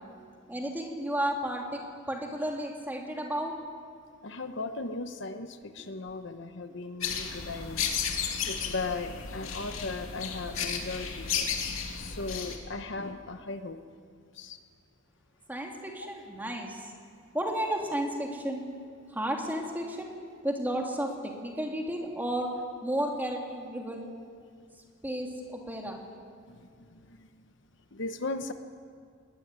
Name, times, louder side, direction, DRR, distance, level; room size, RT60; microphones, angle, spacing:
voice 1, 0.5-1.8 2.1-3.5 15.5-16.8 17.3-18.6 19.1-20.1 20.4-22.5 22.8-24.1 25.0-26.0, right 1 dB, 10° right, 0 dB, 2.8 m, -32 dB
voice 2, 4.2-8.0 8.5-11.5 11.9-13.8 14.3-14.6 16.0-16.1 26.5-27.5 27.9-28.5, left 3 dB, 60° left, 8 dB, 1.1 m, -37 dB
sound 1, 7.0-12.6, left 6 dB, 85° left, 2.6 m, -33 dB
21.5 x 19.5 x 9.6 m, 2.2 s
head